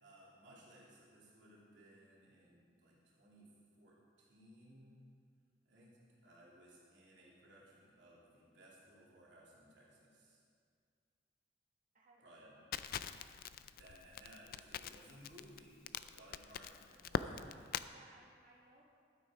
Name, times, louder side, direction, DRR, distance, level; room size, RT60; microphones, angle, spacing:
voice 1, 0.0-3.5 3.8-5.0 5.6-10.4 12.2-12.6 13.8-17.8, right 1 dB, 75° right, -6 dB, 2.9 m, -61 dB
voice 2, 11.9-12.7 17.9-18.9, right 2 dB, 45° right, -3 dB, 1.7 m, -65 dB
Crackle, 12.7-17.9, left 7 dB, 55° left, 0.3 m, -43 dB
12.0 x 9.6 x 5.0 m, 2.2 s
head